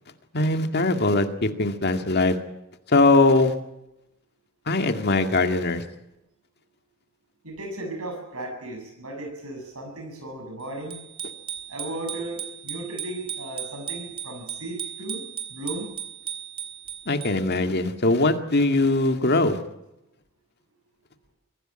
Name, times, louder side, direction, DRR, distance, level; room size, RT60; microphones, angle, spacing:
voice 1, 0.3-2.4 2.9-3.5 4.7-5.8 17.1-19.6, left 2 dB, 50° left, 6 dB, 2.1 m, -21 dB
voice 2, 7.4-11.0 11.7-15.2 15.5-15.9, right 1 dB, 85° right, 3 dB, 7.7 m, -35 dB
Bicycle bell, 10.9-17.6, right 9 dB, 25° right, 3.2 m, -36 dB
24.5 x 16.0 x 8.9 m, 0.89 s
head